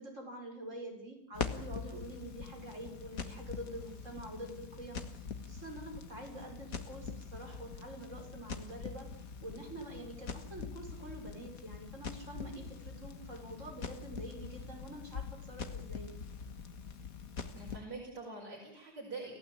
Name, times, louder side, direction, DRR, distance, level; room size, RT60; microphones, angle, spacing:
voice 1, 0.0-9.1 9.4-16.1, right 1 dB, 45° right, 1 dB, 6.6 m, -46 dB
Crackle, 1.3-17.8, left 5 dB, 60° left, 2.0 m, -44 dB
voice 2, 17.4-19.4, right 3 dB, 90° right, -3 dB, 5.9 m, -45 dB
28.5 x 15.5 x 8.8 m, 0.73 s
omnidirectional pair, 1.8 m